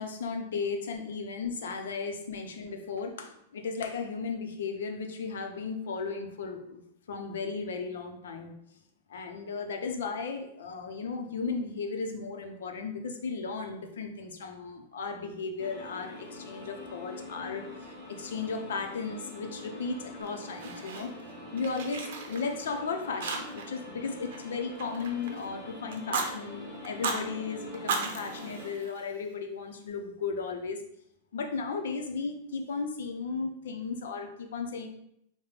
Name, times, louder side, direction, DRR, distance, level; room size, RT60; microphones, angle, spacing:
voice 1, 0.0-6.8 7.1-8.5 9.1-21.1 21.5-30.8 31.3-34.9, left 4 dB, 90° left, 5 dB, 0.6 m, -35 dB
sound 1, 15.6-28.7, left 1 dB, 10° left, 1.5 m, -45 dB
Fire, 20.2-21.3 21.6-22.8 23.2-23.8 24.0-25.4 25.9-26.3 26.8-27.2 27.7-29.3, right 4 dB, 65° right, 0.6 m, -35 dB
4.9 x 2.1 x 3.2 m, 0.75 s
supercardioid pair, 155°, 0 cm